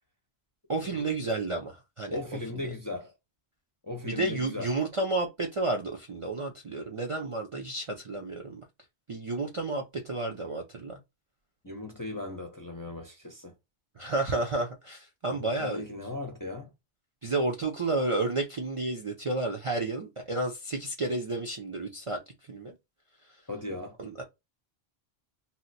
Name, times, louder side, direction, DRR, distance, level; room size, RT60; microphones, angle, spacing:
voice 1, 0.7-2.2 2.6-2.7 4.0-8.6 9.1-11.0 14.0-15.8 17.2-22.2 22.5-22.7 24.0-24.2, right 2 dB, 45° right, 0.5 m, -31 dB
voice 2, 2.1-3.2 3.8-4.7 11.6-13.5 15.3-16.7 23.5-24.0, left 2 dB, 25° left, 0.5 m, -37 dB
2.8 x 2.1 x 4.0 m
omnidirectional pair, 1.1 m